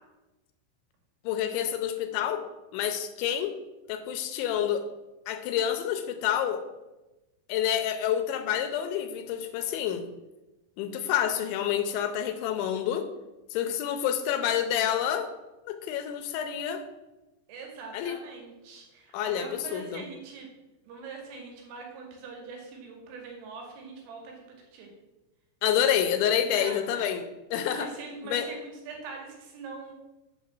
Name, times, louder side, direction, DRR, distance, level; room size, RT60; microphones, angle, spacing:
voice 1, 1.2-2.4 2.7-3.6 3.9-4.9 5.3-6.6 7.5-10.1 10.8-13.1 13.5-15.3 15.7-16.8 17.9-18.2 19.1-20.0 25.6-27.9 28.3-28.5, left 9 dB, 80° left, 8 dB, 3.0 m, -28 dB
voice 2, 17.5-20.5 20.8-24.9 26.5-27.2 27.7-29.9, right 4 dB, 90° right, 1 dB, 4.8 m, -43 dB
8.6 x 6.2 x 7.5 m, 1.0 s
omnidirectional pair, 5.6 m